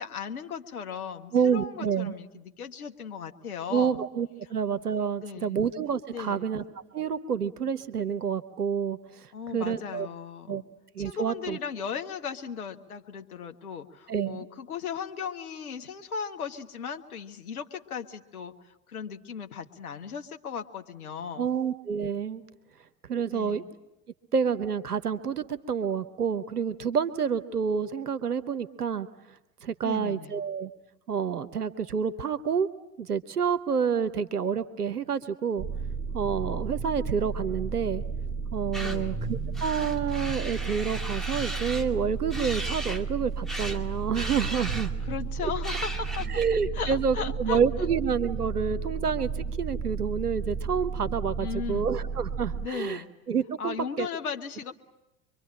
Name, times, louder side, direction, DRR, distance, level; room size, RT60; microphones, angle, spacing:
voice 1, 0.0-4.0 5.2-5.6 6.1-6.5 9.3-10.6 11.0-21.5 23.3-23.7 29.8-30.4 38.8-39.2 45.1-46.3 46.7-47.9 51.4-51.9 52.6-53.1 53.6-54.7, left 7 dB, 70° left, 6 dB, 1.6 m, -37 dB
voice 2, 1.3-2.1 3.7-6.6 6.9-10.1 10.5-10.6 10.9-11.6 14.1-14.5 21.4-22.4 23.1-23.6 24.3-29.1 29.6-30.7 31.1-32.7 33.0-35.7 36.1-38.0 38.5-44.9 46.3-49.3 49.6-53.0 53.3-54.1, right 7 dB, 80° right, 12 dB, 1.0 m, -28 dB
sound 1, 35.6-52.7, right 5 dB, 20° right, 1.3 m, -33 dB
sound 2, 38.7-39.0 39.6-41.9 42.3-43.0 43.5-43.8 44.1-45.1 45.6-46.5, right 1 dB, ahead, 2.4 m, -36 dB
25.5 x 23.5 x 8.9 m, 0.91 s
figure-of-eight pair, 75°, 45 cm